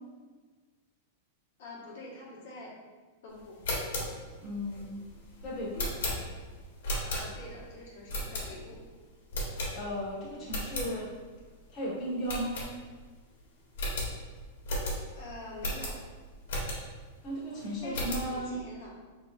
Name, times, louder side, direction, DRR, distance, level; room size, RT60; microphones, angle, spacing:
voice 1, 1.6-2.7 3.2-3.6 7.0-8.8 15.1-16.0 17.8-18.9, left 2 dB, 65° left, -5 dB, 1.4 m, -45 dB
sound 1, 3.5-7.6 8.1-8.8 9.3-10.1 10.4-10.9 11.3-11.4 11.7-11.8 12.2-13.1 13.4-13.5 13.7-17.0 17.5-18.3, left 1 dB, 80° left, 1.5 m, -35 dB
voice 2, 4.4-5.0 5.4-5.9 9.7-11.1 11.7-12.6 17.2-18.6, equal, 25° left, -8 dB, 1.5 m, -35 dB
5.5 x 3.8 x 2.5 m, 1.4 s
supercardioid pair, 160°, 0 cm